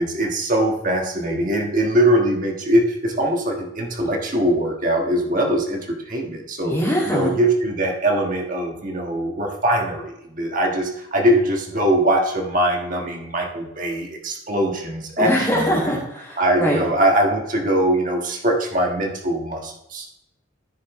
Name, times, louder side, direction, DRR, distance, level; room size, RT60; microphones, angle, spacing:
voice 1, 0.0-6.8 7.0-16.0 16.4-20.1, right 1 dB, 40° right, 1 dB, 1.4 m, -22 dB
voice 2, 6.6-7.3 15.2-16.8, equal, 15° left, -5 dB, 2.2 m, -22 dB
14.0 x 6.6 x 3.1 m, 0.82 s
head